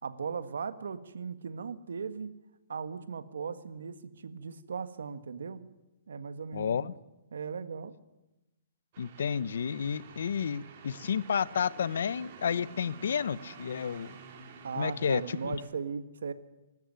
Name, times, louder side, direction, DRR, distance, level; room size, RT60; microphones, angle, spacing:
voice 1, 0.0-2.3 2.7-5.6 6.1-6.9 7.3-7.9 14.6-16.3, right 5 dB, 85° right, 11 dB, 1.7 m, -38 dB
voice 2, 6.5-7.0 9.0-14.1 14.8-15.6, left 7 dB, 70° left, 19 dB, 0.8 m, -31 dB
sound 1, 8.9-15.7, right 5 dB, 40° right, 3.5 m, -50 dB
25.0 x 13.5 x 9.5 m, 0.99 s
hypercardioid pair, 160°, 0 cm